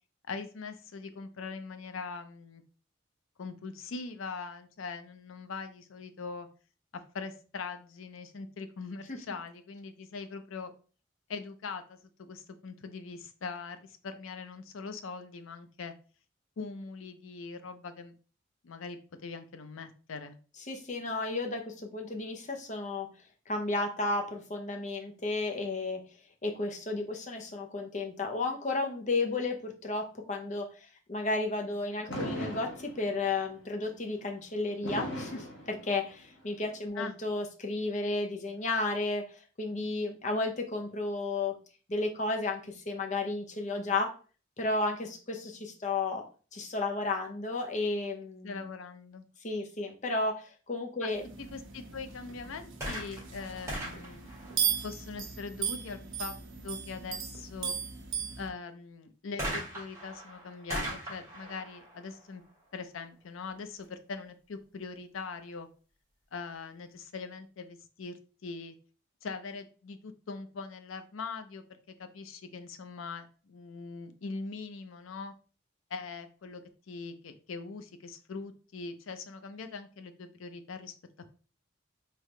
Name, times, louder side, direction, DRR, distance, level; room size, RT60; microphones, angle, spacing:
voice 1, 0.3-2.6 3.4-6.5 6.9-10.7 11.3-15.9 16.6-18.1 18.6-20.4 31.8-32.1 37.0-37.2 48.4-49.2 51.0-51.1 51.4-54.3 54.8-56.3 56.6-57.8 58.4-62.4 62.7-65.7 66.3-68.8 69.2-75.3 75.9-80.9, left 4 dB, 85° left, 9 dB, 0.5 m, -42 dB
voice 2, 20.7-23.1 23.5-26.0 26.4-41.5 41.9-44.1 44.6-46.2 46.5-48.6 49.4-51.2, left 2 dB, 35° left, 2 dB, 0.7 m, -33 dB
Fireworks, 32.1-33.4 34.8-36.4, equal, 70° left, 1.1 m, -38 dB
sound 1, 51.1-58.5, right 8 dB, 75° right, 0.8 m, -37 dB
sound 2, 52.8-55.3 59.4-63.0 63.8-63.9, right 1 dB, 15° right, 1.8 m, -40 dB
3.7 x 3.4 x 3.2 m, 0.38 s
head